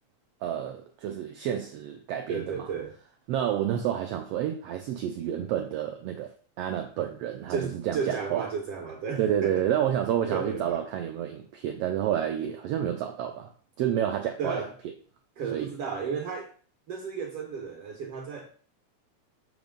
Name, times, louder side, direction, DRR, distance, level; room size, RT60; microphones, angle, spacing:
voice 1, 0.4-2.6 3.3-6.3 6.6-8.4 9.2-13.5 13.8-14.6 15.5-15.7, right 10 dB, 85° right, 1.3 m, -29 dB
voice 2, 2.3-2.9 7.5-9.7 10.3-10.8 14.4-14.7 15.4-16.5 16.9-18.5, right 5 dB, 70° right, 1.5 m, -33 dB
7.1 x 3.0 x 5.2 m
omnidirectional pair, 3.4 m